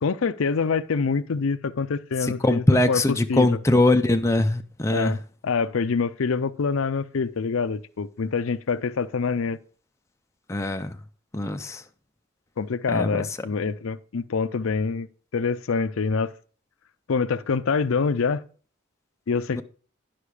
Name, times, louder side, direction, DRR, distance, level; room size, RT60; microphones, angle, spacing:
voice 1, 0.0-3.0 3.3-3.5 4.9-5.2 5.4-9.6 12.6-15.1 15.3-16.3 17.1-18.4 19.3-19.6, left 5 dB, 70° left, 0.5 m, -25 dB
voice 2, 2.2-5.1 10.5-11.0 11.3-11.8 12.9-13.3 13.6-13.7 19.5-19.6, left 2 dB, 15° left, 0.4 m, -22 dB
10.0 x 5.9 x 4.8 m
head